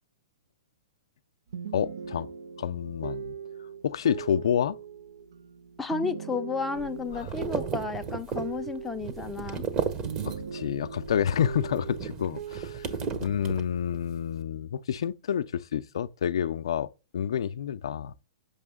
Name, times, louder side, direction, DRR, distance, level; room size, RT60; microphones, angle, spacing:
sound 1, 1.5-9.8 10.1-13.2, right 7 dB, 70° right, 0.4 m, -40 dB
voice 1, 1.7-2.3 2.6-3.3 3.8-4.8 7.1-7.3 10.2-12.9 13.2-16.9 17.1-18.1, left 9 dB, 70° left, 0.4 m, -29 dB
voice 2, 5.8-9.6, left 4 dB, 5° left, 0.5 m, -32 dB
sound 2, 6.8-10.7 11.0-14.1, right 6 dB, 30° right, 0.9 m, -35 dB
6.8 x 5.5 x 3.6 m
hypercardioid pair, 135°, 3 cm